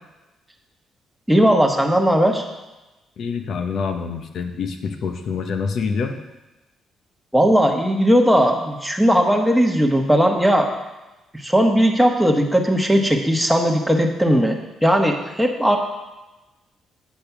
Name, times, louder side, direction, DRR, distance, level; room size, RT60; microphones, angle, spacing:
voice 1, 1.3-2.4 7.3-10.7 11.3-15.8, equal, 5° right, 1 dB, 1.3 m, -17 dB
voice 2, 3.2-6.2, left 5 dB, 65° left, 6 dB, 0.9 m, -26 dB
8.5 x 5.1 x 6.0 m, 1.1 s
cardioid pair, 90°, 0 cm